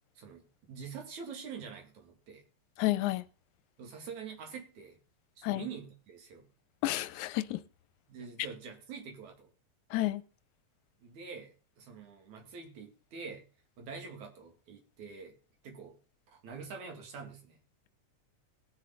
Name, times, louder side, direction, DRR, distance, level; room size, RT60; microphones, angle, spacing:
voice 1, 0.2-2.4 3.8-5.0 5.4-6.5 8.1-9.5 11.0-13.4 13.8-15.4 15.6-16.0 16.3-17.6, right 5 dB, 75° right, 3.6 m, -45 dB
voice 2, 2.8-3.2 5.4-5.7 6.8-7.6 9.9-10.2, left 17 dB, 85° left, 2.1 m, -30 dB
19.5 x 6.6 x 4.0 m
omnidirectional pair, 3.4 m